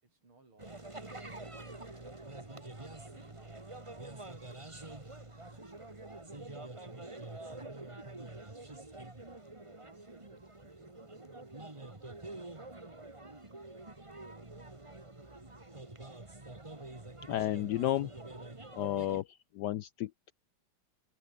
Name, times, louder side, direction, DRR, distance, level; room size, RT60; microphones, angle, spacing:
voice 1, 0.0-2.2 3.0-4.7 5.2-6.2 6.8-8.0 9.6-13.2, right 3 dB, 85° right, 6.9 m, -65 dB
sound 1, 0.6-19.2, right 2 dB, 15° right, 2.0 m, -47 dB
voice 2, 17.3-18.1 18.7-20.3, left 13 dB, 75° left, 1.0 m, -33 dB
omnidirectional pair, 2.3 m